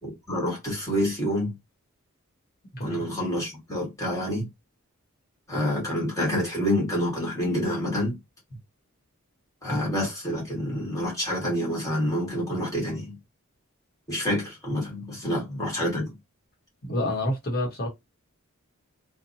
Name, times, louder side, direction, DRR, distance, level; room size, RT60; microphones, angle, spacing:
voice 1, 0.0-1.5 2.8-4.4 5.5-8.2 9.6-13.2 14.1-16.1, equal, 15° left, 1.5 m, -27 dB
voice 2, 16.8-17.9, left 1 dB, 45° left, 1.0 m, -28 dB
2.7 x 2.2 x 2.6 m
head